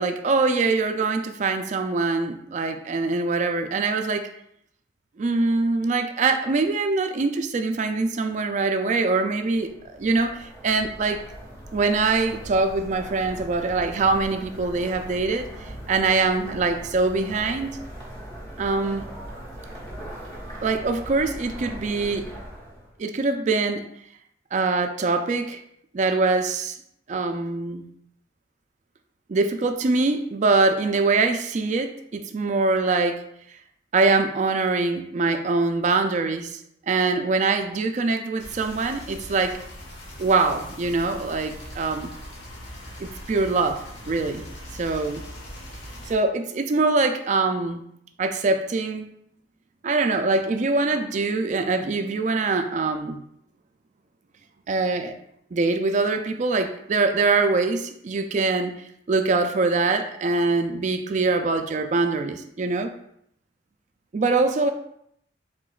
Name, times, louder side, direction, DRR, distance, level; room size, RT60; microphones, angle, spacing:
voice 1, 0.0-4.3 5.2-11.2 11.7-15.5 15.9-17.8 18.6-19.1 20.6-22.3 23.0-23.9 24.5-25.6 25.9-26.8 27.1-27.9 29.3-33.2 33.9-36.6 36.9-39.6 40.2-42.1 43.0-44.5 44.8-45.2 46.1-47.8 48.2-49.1 49.8-53.2 54.7-55.1 55.5-58.7 59.1-62.9 64.1-64.7, right 3 dB, 40° right, 7 dB, 0.4 m, -23 dB
sound 1, 9.4-22.9, equal, 20° left, 1.2 m, -40 dB
sound 2, 38.4-46.1, equal, 70° left, 1.2 m, -40 dB
4.9 x 3.7 x 2.4 m, 0.73 s
head